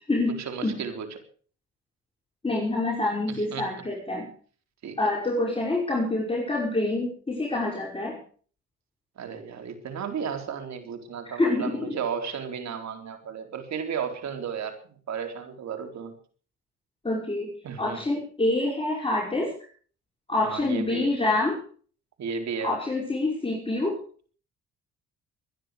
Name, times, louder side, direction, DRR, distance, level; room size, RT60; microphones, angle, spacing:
voice 1, 0.3-1.2 3.3-3.7 4.8-5.0 9.2-14.8 15.1-16.1 17.6-18.0 20.4-21.1 22.2-22.7, right 6 dB, 65° right, 6 dB, 3.9 m, -34 dB
voice 2, 2.4-4.3 5.0-8.2 11.4-12.0 17.0-17.5 17.8-19.5 20.3-21.6 22.6-24.0, left 2 dB, 20° left, -2 dB, 5.8 m, -26 dB
23.5 x 10.5 x 5.1 m, 0.44 s
cardioid pair, 90°, 30 cm